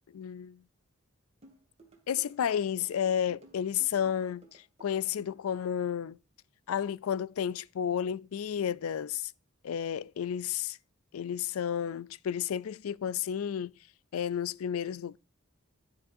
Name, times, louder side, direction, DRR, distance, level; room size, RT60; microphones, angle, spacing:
voice 1, 0.1-0.6 2.1-6.2 6.7-9.3 9.6-10.8 11.1-13.7 14.1-15.2, left 8 dB, 85° left, 0.4 m, -32 dB
sound 1, 1.4-5.4, right 2 dB, 30° right, 2.4 m, -57 dB
11.0 x 9.5 x 2.6 m
head